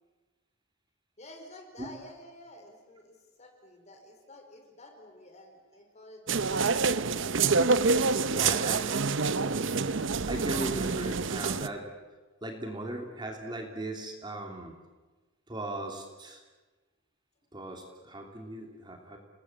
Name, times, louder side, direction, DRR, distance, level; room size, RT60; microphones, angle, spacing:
voice 1, 1.2-7.1 7.9-9.5, left 1 dB, 35° left, 4 dB, 4.8 m, -51 dB
sound 1, 6.3-11.7, right 4 dB, 65° right, 0.8 m, -27 dB
voice 2, 8.3-8.8 10.3-11.9 12.4-14.7 15.5-16.4 17.5-19.2, right 1 dB, 20° right, 3 dB, 3.0 m, -38 dB
30.0 x 20.0 x 8.9 m, 1.3 s
head